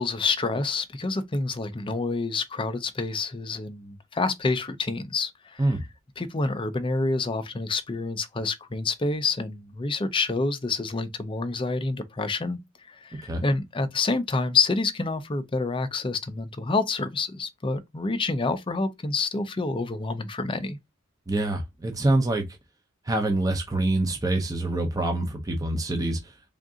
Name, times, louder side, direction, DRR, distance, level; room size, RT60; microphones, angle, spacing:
voice 1, 0.0-5.7 6.2-12.6 12.9-20.8, left 3 dB, 25° left, 0.5 m, -28 dB
voice 2, 21.3-22.5 23.1-26.2, right 2 dB, 15° right, 0.6 m, -25 dB
3.5 x 2.6 x 3.7 m
head